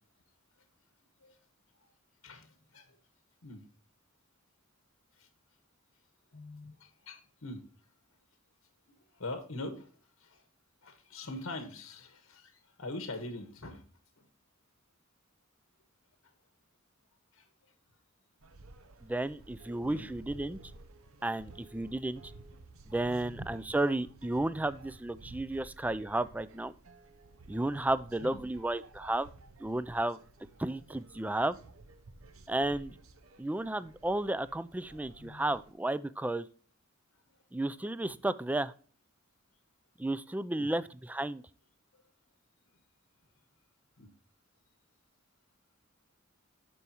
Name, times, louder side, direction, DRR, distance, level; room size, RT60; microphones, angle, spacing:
voice 1, 2.2-3.0 3.4-3.6 5.2-5.3 6.3-7.6 9.1-9.9 10.2-10.5 10.8-13.9 14.2-14.3 16.2-16.3 17.3-17.5 19.8-20.1 23.1-23.4 28.2-28.4 35.2-35.6 38.1-38.2 40.5-40.7 44.0-44.1, left 2 dB, 90° left, 7 dB, 1.3 m, -43 dB
sound 1, 18.4-35.7, right 2 dB, 85° right, 0.8 m, -53 dB
voice 2, 19.0-20.6 21.2-22.3 22.9-26.7 27.5-29.3 29.6-30.2 30.6-31.6 32.5-33.0 33.4-36.5 37.5-38.7 40.0-41.4, right 1 dB, 10° right, 16 dB, 0.3 m, -33 dB
12.0 x 4.8 x 2.9 m, 0.42 s
head